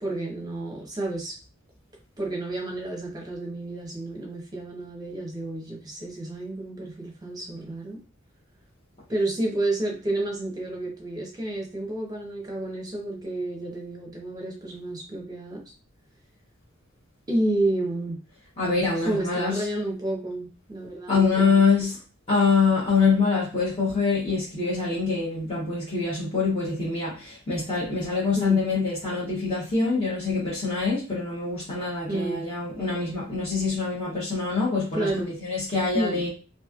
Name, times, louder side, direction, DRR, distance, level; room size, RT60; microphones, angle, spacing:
voice 1, 0.0-1.3 2.2-8.0 9.1-15.7 17.3-18.2 18.9-21.9 28.3-28.6 32.1-32.4 34.9-35.3 35.9-36.2, right 2 dB, 20° right, -1 dB, 0.8 m, -30 dB
voice 2, 18.6-19.6 21.1-22.0 22.3-36.3, left 4 dB, 30° left, -9 dB, 1.0 m, -25 dB
3.1 x 2.6 x 2.4 m, 0.34 s
head